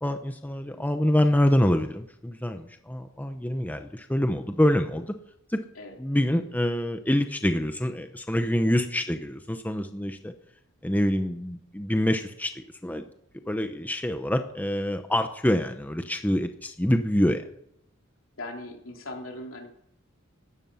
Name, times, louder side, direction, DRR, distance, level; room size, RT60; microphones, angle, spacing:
voice 1, 0.0-5.1 5.5-5.6 6.0-10.3 10.8-13.0 13.5-17.4, left 1 dB, 10° left, 7 dB, 0.8 m, -26 dB
voice 2, 18.4-19.7, left 2 dB, 70° left, 1 dB, 3.7 m, -39 dB
17.0 x 13.0 x 5.6 m, 0.74 s
head